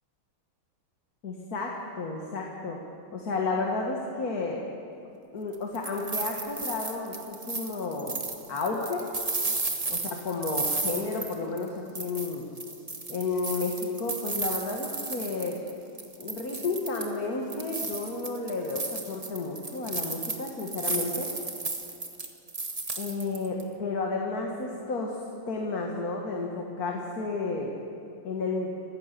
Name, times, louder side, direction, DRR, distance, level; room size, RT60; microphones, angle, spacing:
voice 1, 1.2-2.8 3.1-4.6 5.3-8.2 8.5-9.1 9.9-12.4 13.1-15.6 16.2-21.3 23.0-25.2 25.5-27.7 28.2-28.7, left 3 dB, 45° left, 0 dB, 2.1 m, -32 dB
sound 1, 5.5-11.7 12.0-15.7 16.0-17.2 17.5-23.6, right 3 dB, 20° right, 1.0 m, -34 dB
26.5 x 15.0 x 6.8 m, 2.6 s
omnidirectional pair, 2.3 m